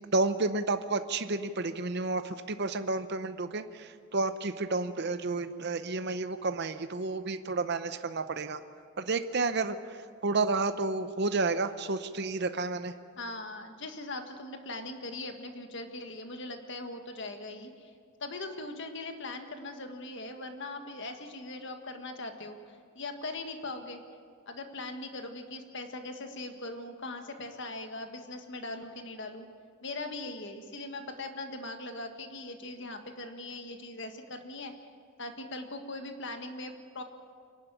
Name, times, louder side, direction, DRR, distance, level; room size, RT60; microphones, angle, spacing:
voice 1, 0.1-8.6 9.0-12.9, right 3 dB, 50° right, 10 dB, 0.7 m, -31 dB
voice 2, 13.2-17.9 18.2-24.0 24.5-29.5 29.8-34.7 35.2-37.0, left 2 dB, 55° left, 6 dB, 1.7 m, -40 dB
25.5 x 11.5 x 9.1 m, 2.1 s
head